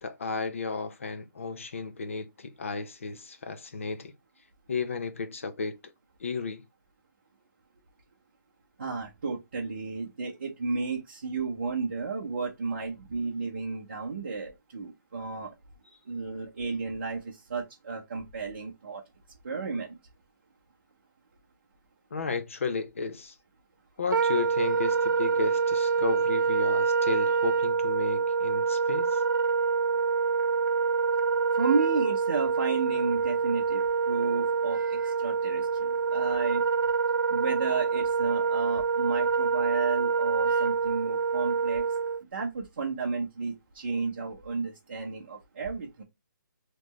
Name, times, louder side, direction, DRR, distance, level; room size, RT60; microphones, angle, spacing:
voice 1, 0.0-4.1 4.7-5.9 6.2-6.6 22.1-23.4 24.0-29.2, left 4 dB, 40° left, 0.5 m, -33 dB
voice 2, 8.8-15.5 16.1-19.0 19.4-20.0 31.6-36.6 37.3-41.8 42.3-46.0, right 4 dB, 35° right, 0.8 m, -33 dB
Wind instrument woodwind instrument, 24.1-42.2, right 5 dB, 75° right, 0.4 m, -26 dB
4.1 x 3.1 x 2.9 m
hypercardioid pair, 180°, 11 cm